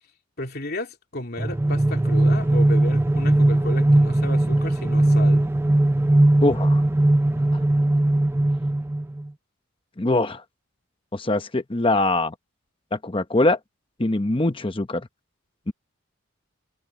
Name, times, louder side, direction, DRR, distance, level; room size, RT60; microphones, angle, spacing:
voice 1, 0.4-5.5 7.8-7.9, left 1 dB, 50° left, 3.2 m, -33 dB
sound 1, 1.4-9.3, right 1 dB, 10° right, 0.3 m, -19 dB
voice 2, 6.4-6.8 10.0-10.4 11.1-12.3 12.9-13.6 14.0-15.1 15.7-15.8, left 2 dB, 25° left, 0.9 m, -22 dB
head